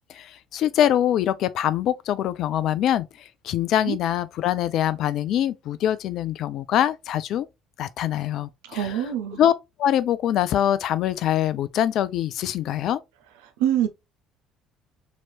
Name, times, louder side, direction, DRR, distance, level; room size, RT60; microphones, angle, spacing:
voice 1, 0.1-3.1 3.4-7.5 7.8-9.1 9.4-9.5 9.8-13.0, left 11 dB, 50° left, 0.4 m, -24 dB
voice 2, 8.7-9.4 13.6-13.9, right 10 dB, 65° right, 0.4 m, -24 dB
4.1 x 2.9 x 2.4 m
figure-of-eight pair, 55°, 0 cm